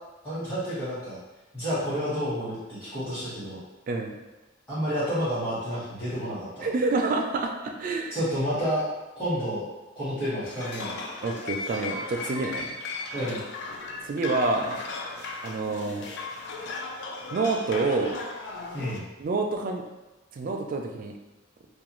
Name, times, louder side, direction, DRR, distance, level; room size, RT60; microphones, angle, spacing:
voice 1, 0.2-1.2 1.5-3.6 4.7-6.7 8.1-8.8 9.1-9.6 9.9-10.9 13.1-13.4 18.7-19.0, equal, 20° left, -16 dB, 1.1 m, -30 dB
voice 2, 3.9-4.2 6.6-8.2 11.2-12.8 14.0-14.8 15.4-16.1 17.3-18.2 19.2-19.8 20.4-21.1, right 3 dB, 45° right, 3 dB, 0.3 m, -28 dB
sound 1, 10.4-19.0, left 3 dB, 60° left, 0.4 m, -36 dB
2.4 x 2.2 x 3.0 m, 1.1 s
head